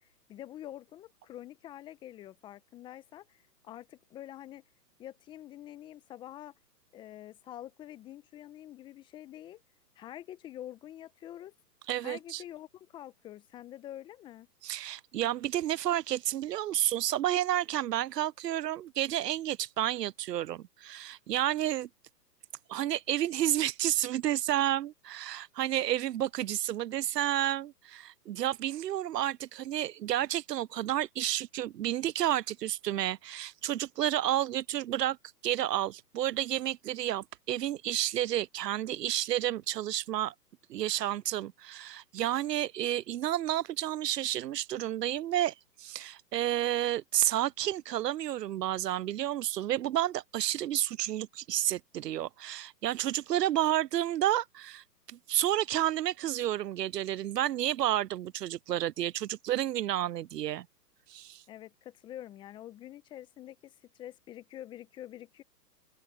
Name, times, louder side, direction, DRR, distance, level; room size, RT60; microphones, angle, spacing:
voice 1, 0.0-4.6 5.0-6.5 6.9-9.6 10.0-11.5 12.0-14.5 61.5-65.4, left 12 dB, 10° left, 0.7 m, -46 dB
voice 2, 11.9-12.4 14.6-21.9 22.7-35.2 35.4-40.3 40.7-60.7 61.1-61.4, right 12 dB, 75° right, 0.6 m, -31 dB
open air
hypercardioid pair, 135°, 49 cm